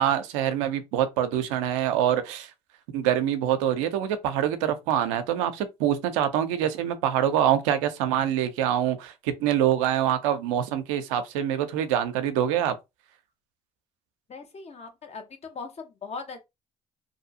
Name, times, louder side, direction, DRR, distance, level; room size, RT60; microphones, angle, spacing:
voice 1, 0.0-2.5 2.9-12.7, right 10 dB, 85° right, 0.5 m, -25 dB
voice 2, 14.3-16.5, left 4 dB, 40° left, 1.0 m, -39 dB
2.6 x 2.4 x 2.7 m
hypercardioid pair, 65°, 16 cm